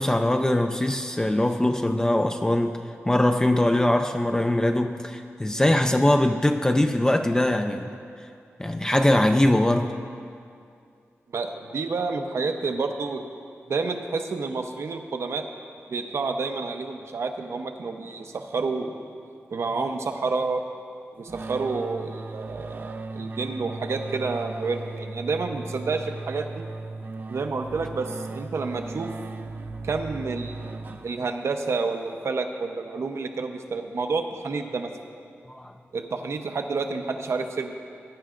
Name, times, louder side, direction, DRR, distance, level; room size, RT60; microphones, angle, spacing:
voice 1, 0.0-2.8 3.1-7.9 8.6-10.0 35.5-35.7, left 1 dB, 15° left, 5 dB, 0.4 m, -22 dB
voice 2, 11.3-13.2 13.7-15.5 15.9-19.0 19.5-20.6 21.1-26.7 27.3-29.1 29.8-34.9 35.9-37.7, right 4 dB, 70° right, 5 dB, 0.8 m, -29 dB
sound 1, 21.3-31.5, right 3 dB, 40° right, 0.5 m, -37 dB
20.0 x 10.0 x 2.5 m, 2.4 s
wide cardioid pair, 125°, 5 cm